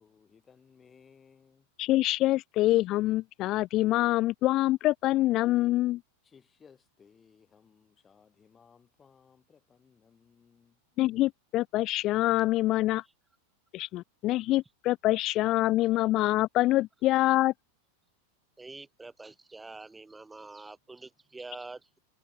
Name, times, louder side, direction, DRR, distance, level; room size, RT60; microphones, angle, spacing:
voice 1, 0.0-1.7 6.2-10.8, left 6 dB, 20° left, 4.2 m, -60 dB
voice 2, 1.8-6.0 11.0-13.0 13.7-17.5, left 16 dB, 35° left, 0.4 m, -25 dB
voice 3, 18.6-22.0, right 3 dB, 10° right, 0.9 m, -46 dB
figure-of-eight pair, 90°, 0 cm